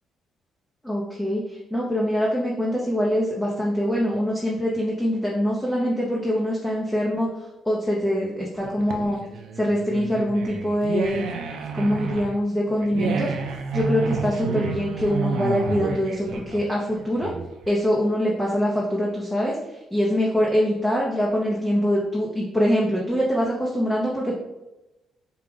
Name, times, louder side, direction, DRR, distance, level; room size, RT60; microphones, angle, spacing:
voice 1, 0.8-7.3 7.6-9.2 9.6-11.3 11.7-13.3 13.7-17.3 17.7-19.6 19.9-24.3, equal, 5° left, -5 dB, 0.8 m, -24 dB
sound 1, 8.6-17.7, right 5 dB, 80° right, 0.5 m, -30 dB
4.6 x 2.4 x 3.7 m, 0.97 s
cardioid pair, 90°, 0 cm